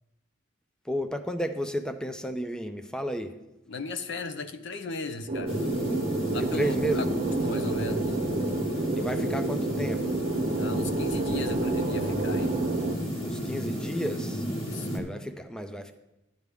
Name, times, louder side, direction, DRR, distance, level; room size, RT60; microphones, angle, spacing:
voice 1, 0.8-3.4 6.4-7.1 9.0-10.1 13.2-14.5 14.9-15.9, equal, 5° left, 9 dB, 0.5 m, -32 dB
voice 2, 3.7-5.6 6.3-7.0 7.4-8.2 10.5-12.6 14.5-15.0, left 3 dB, 65° left, 9 dB, 0.7 m, -36 dB
sound 1, 5.3-12.9, right 2 dB, 40° right, 1.1 m, -29 dB
sound 2, 5.5-15.0, equal, 30° left, 1.9 m, -33 dB
11.5 x 9.6 x 3.5 m, 0.96 s
head